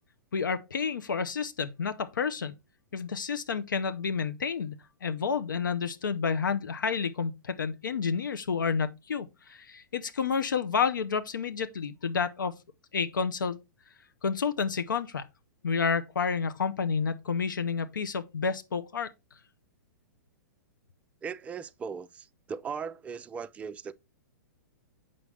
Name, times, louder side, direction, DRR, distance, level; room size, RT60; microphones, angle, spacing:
voice 1, 0.3-2.6 2.9-12.6 12.9-13.6 14.2-15.3 15.6-19.4, left 5 dB, 80° left, 0.6 m, -30 dB
voice 2, 21.2-23.9, right 6 dB, 15° right, 0.4 m, -38 dB
6.9 x 5.3 x 3.3 m
hypercardioid pair, 120°, 10 cm